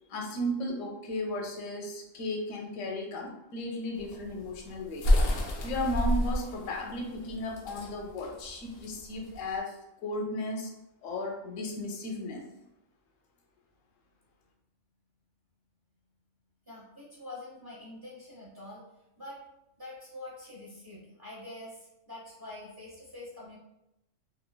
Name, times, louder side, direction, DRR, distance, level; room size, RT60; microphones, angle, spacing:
voice 1, 0.1-5.1 5.6-10.7 11.0-12.4, left 1 dB, 85° left, 1 dB, 1.0 m, -35 dB
sound 1, 4.0-9.6, left 1 dB, 65° left, 0.7 m, -29 dB
voice 2, 16.7-18.8 19.2-19.4 19.8-23.6, left 2 dB, 25° right, -6 dB, 0.6 m, -45 dB
3.0 x 2.2 x 2.2 m, 0.87 s
omnidirectional pair, 1.3 m